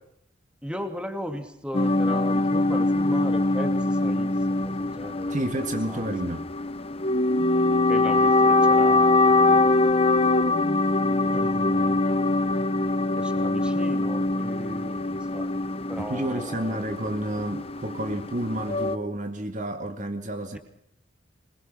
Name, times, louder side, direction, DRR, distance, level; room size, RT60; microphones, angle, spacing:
voice 1, 0.6-5.3 5.9-6.1 7.9-9.7 11.2-12.0 13.2-15.0 15.3-15.5 15.9-16.8, equal, 5° right, 2.9 m, -36 dB
sound 1, 1.7-19.0, left 2 dB, 30° left, 0.9 m, -23 dB
voice 2, 5.3-6.4 16.0-20.6, right 1 dB, 40° right, 1.9 m, -30 dB
26.0 x 21.0 x 6.1 m
head